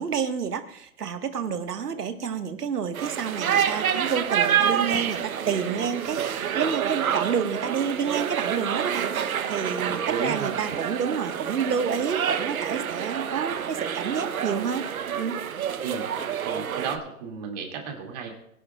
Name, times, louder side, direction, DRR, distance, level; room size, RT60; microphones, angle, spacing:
voice 1, 0.0-14.8 15.2-15.4, right 7 dB, 80° right, 7 dB, 1.7 m, -29 dB
sound 1, 2.9-17.0, right 8 dB, 65° right, 1.1 m, -28 dB
voice 2, 9.9-10.5 15.8-16.0 16.4-18.3, right 6 dB, 25° right, 1 dB, 2.5 m, -33 dB
22.5 x 11.0 x 2.4 m, 0.74 s
hypercardioid pair, 160°, 46 cm